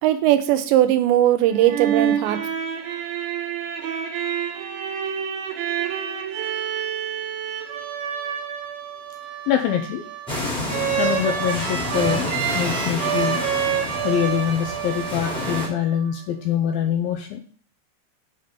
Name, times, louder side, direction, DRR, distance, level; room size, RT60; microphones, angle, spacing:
voice 1, 0.0-2.4, right 12 dB, 85° right, 9 dB, 3.0 m, -19 dB
sound 1, 1.4-16.1, right 9 dB, 65° right, 2.8 m, -28 dB
voice 2, 9.5-10.0 11.0-12.3 12.5-13.4 13.8-17.4, left 9 dB, 80° left, 4 dB, 2.1 m, -24 dB
sound 2, 10.3-15.7, left 1 dB, ahead, 1.3 m, -29 dB
7.4 x 5.3 x 5.2 m, 0.43 s
omnidirectional pair, 5.0 m